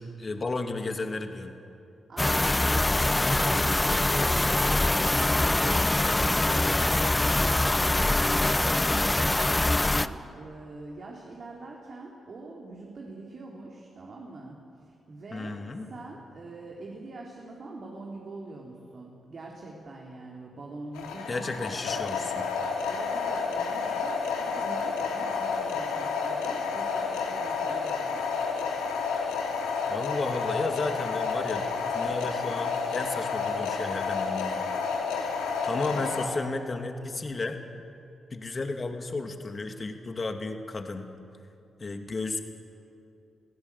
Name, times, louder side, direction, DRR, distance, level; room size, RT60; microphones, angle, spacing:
voice 1, 0.0-1.5 15.3-15.9 21.3-22.5 29.9-31.7 31.9-34.7 35.6-37.6 38.3-41.1 41.8-42.4, left 3 dB, 40° left, 5 dB, 2.6 m, -33 dB
voice 2, 2.1-7.1 7.4-22.0 22.8-28.3 35.8-36.1, right 2 dB, 55° right, -2 dB, 3.4 m, -44 dB
sound 1, 2.2-10.1, left 2 dB, 20° left, 0.8 m, -24 dB
sound 2, 20.9-36.3, left 5 dB, 90° left, 2.6 m, -30 dB
25.5 x 16.5 x 8.4 m, 2.6 s
hypercardioid pair, 45°, 0 cm